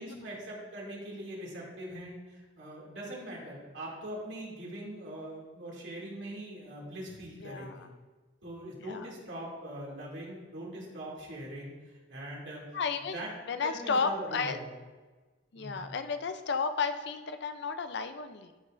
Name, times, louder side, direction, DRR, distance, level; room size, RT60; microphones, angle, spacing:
voice 1, 0.0-7.9 8.4-12.8 13.1-13.3 13.6-14.6 15.5-15.9, right 1 dB, 70° right, -4 dB, 2.5 m, -42 dB
voice 2, 7.4-7.9 8.9-9.1 12.7-13.2 13.5-14.6 15.5-18.5, left 5 dB, 65° left, 9 dB, 0.5 m, -33 dB
13.0 x 5.4 x 2.6 m, 1.3 s
head